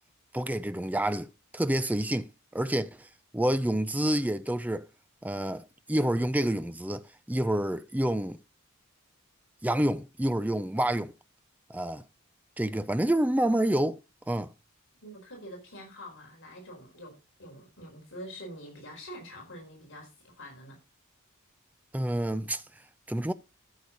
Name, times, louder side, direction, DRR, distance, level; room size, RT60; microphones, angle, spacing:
voice 1, 0.3-1.3 1.5-3.1 3.3-4.8 5.2-8.4 9.6-11.1 11.7-12.0 12.6-14.0 14.3-14.5 21.9-22.6 23.1-23.3, right 1 dB, 5° right, 0.5 m, -28 dB
voice 2, 15.0-20.8, equal, 60° left, 4.7 m, -45 dB
13.0 x 6.6 x 4.0 m
head